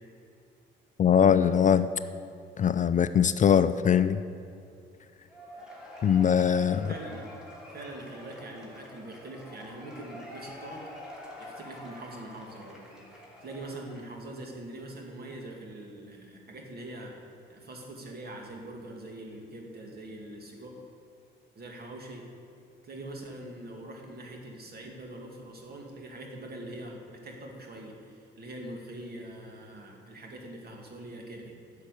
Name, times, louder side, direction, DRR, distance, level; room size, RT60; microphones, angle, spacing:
voice 1, 1.0-1.9 2.6-4.2 6.0-6.9, left 8 dB, 40° left, 12 dB, 0.4 m, -22 dB
Cheering / Applause / Crowd, 5.3-14.2, equal, 5° right, 3.0 m, -46 dB
voice 2, 6.9-7.2 7.7-10.8 11.4-17.1 17.5-20.7 21.6-22.2 22.8-31.5, right 1 dB, 50° right, 1 dB, 2.4 m, -43 dB
10.5 x 6.6 x 8.3 m, 2.6 s
cardioid pair, 90°, 20 cm